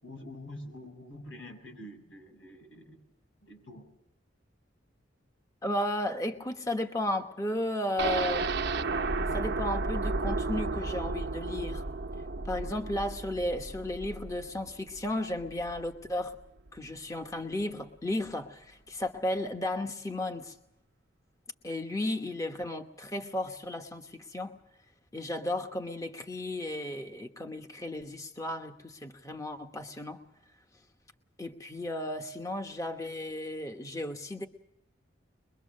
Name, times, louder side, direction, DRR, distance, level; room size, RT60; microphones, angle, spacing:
voice 1, 0.0-3.0 3.4-3.9 12.6-12.8, left 1 dB, 90° left, 3 dB, 6.7 m, -46 dB
voice 2, 5.6-8.5 9.3-11.8 12.4-16.4 16.7-20.6 21.6-24.6 25.1-30.2 31.4-34.5, left 1 dB, 15° left, 4 dB, 1.1 m, -34 dB
sound 1, 8.0-15.9 16.2-16.3 16.7-16.8, right 3 dB, 60° right, 0.8 m, -33 dB
22.5 x 22.5 x 6.5 m, 0.81 s
head